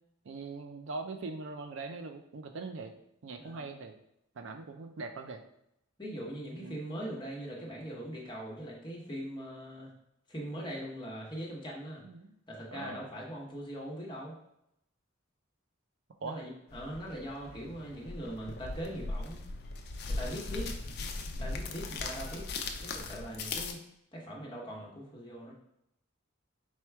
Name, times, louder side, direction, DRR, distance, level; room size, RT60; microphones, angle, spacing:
voice 1, 0.2-2.9 3.2-4.0 4.4-5.4 6.6-6.8 12.0-12.3 12.7-13.0 16.2-16.4, right 3 dB, 65° right, 6 dB, 0.4 m, -41 dB
voice 2, 3.4-3.7 6.0-9.9 10.3-12.0 12.5-14.3 16.2-19.4 20.1-20.7 21.4-22.4 22.8-23.8 24.1-25.5, equal, 20° left, -3 dB, 1.0 m, -41 dB
sound 1, 16.7-23.7, left 3 dB, 50° left, 0.5 m, -39 dB
4.4 x 2.3 x 4.5 m, 0.79 s
head